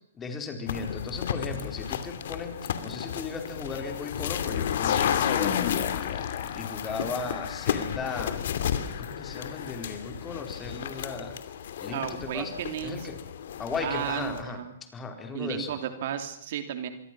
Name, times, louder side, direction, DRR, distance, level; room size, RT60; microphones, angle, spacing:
voice 1, 0.2-5.6 6.1-6.2 6.5-8.6 9.0-11.4 11.8-12.5 12.8-13.2 13.6-14.6 14.9-15.7, left 4 dB, 15° left, 5 dB, 4.5 m, -36 dB
sound 1, 0.7-14.4, left 9 dB, 65° left, 2.7 m, -32 dB
sound 2, 4.8-7.1, left 10 dB, 50° left, 3.2 m, -33 dB
voice 2, 11.9-13.0 13.8-14.7 15.3-16.9, right 10 dB, 60° right, 8 dB, 3.1 m, -33 dB
26.5 x 22.5 x 6.3 m, 0.73 s
hypercardioid pair, 130°, 0 cm